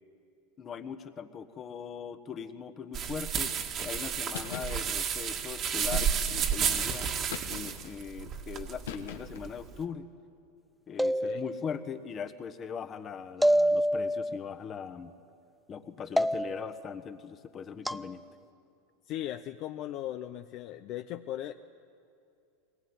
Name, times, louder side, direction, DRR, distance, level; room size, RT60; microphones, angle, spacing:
voice 1, 0.6-3.5 3.8-7.1 7.5-10.1 10.9-15.1 15.7-18.2, left 6 dB, 30° left, 9 dB, 1.3 m, -40 dB
sound 1, 2.9-9.8, right 7 dB, 35° right, 1.9 m, -32 dB
sound 2, 4.3-4.8 5.9-6.5 7.3-7.9 8.8-9.5, left 9 dB, 90° left, 1.8 m, -40 dB
voice 2, 11.0-11.4 19.0-21.5, left 12 dB, 50° left, 8 dB, 0.7 m, -38 dB
sound 3, 11.0-11.8 13.4-14.4 16.2-16.8 17.9-18.1, equal, ahead, 0.5 m, -27 dB
21.5 x 19.5 x 9.7 m, 2.6 s
supercardioid pair, 120°, 0 cm